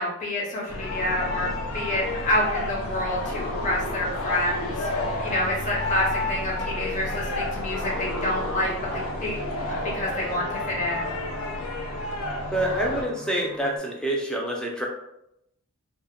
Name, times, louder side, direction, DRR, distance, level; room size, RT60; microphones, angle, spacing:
voice 1, 0.0-1.5 1.7-4.9 5.2-9.4 9.7-11.1, left 1 dB, 35° left, -3 dB, 0.7 m, -28 dB
sound 1, 0.7-13.0, left 2 dB, 65° left, 0.4 m, -30 dB
sound 2, 7.3-13.8, right 3 dB, 85° right, 0.5 m, -44 dB
voice 2, 12.5-14.9, right 1 dB, 5° left, -1 dB, 0.4 m, -27 dB
2.1 x 2.1 x 3.5 m, 0.82 s
head